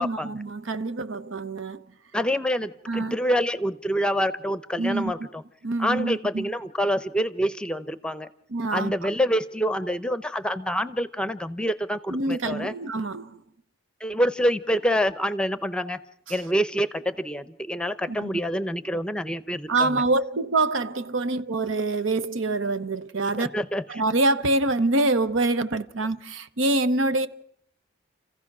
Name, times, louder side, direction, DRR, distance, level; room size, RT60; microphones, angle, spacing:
voice 1, 0.0-1.8 2.9-3.1 4.8-5.3 5.6-6.5 8.5-8.9 12.1-13.4 16.3-16.4 18.1-18.3 19.7-23.5 23.9-27.3, right 2 dB, 80° right, 0.9 m, -25 dB
voice 2, 2.1-5.2 5.8-8.3 8.7-12.7 14.0-16.0 16.3-20.0 23.4-23.8, equal, 5° left, 0.7 m, -26 dB
29.0 x 15.5 x 6.1 m
head